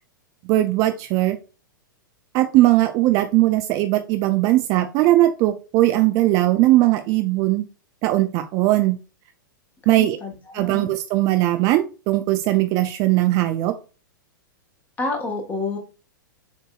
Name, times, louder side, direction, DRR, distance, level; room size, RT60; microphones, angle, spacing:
voice 1, 0.4-1.4 2.3-7.6 8.0-9.0 9.9-10.2 10.5-13.7, right 16 dB, 30° right, 8 dB, 0.3 m, -19 dB
voice 2, 9.8-10.9 15.0-15.8, left 3 dB, 15° left, 3 dB, 1.2 m, -29 dB
7.1 x 2.7 x 2.3 m, 0.34 s
figure-of-eight pair, 100°, 11 cm